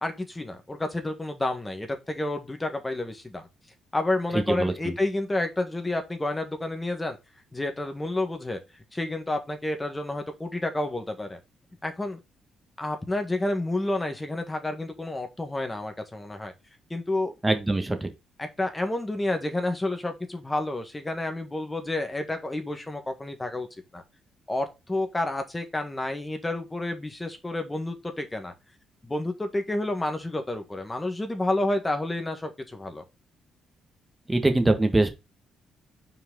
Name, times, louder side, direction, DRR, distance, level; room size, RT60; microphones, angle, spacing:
voice 1, 0.0-3.5 3.9-7.2 7.5-8.6 8.9-11.4 11.8-12.2 12.8-16.5 16.9-17.3 18.4-23.7 23.9-24.0 24.5-28.5 29.0-33.0, left 2 dB, 15° left, 1.6 m, -30 dB
voice 2, 4.3-5.0 17.4-18.1 34.3-35.1, right 2 dB, 15° right, 1.6 m, -23 dB
5.8 x 4.6 x 3.8 m
cardioid pair, 90°, 0 cm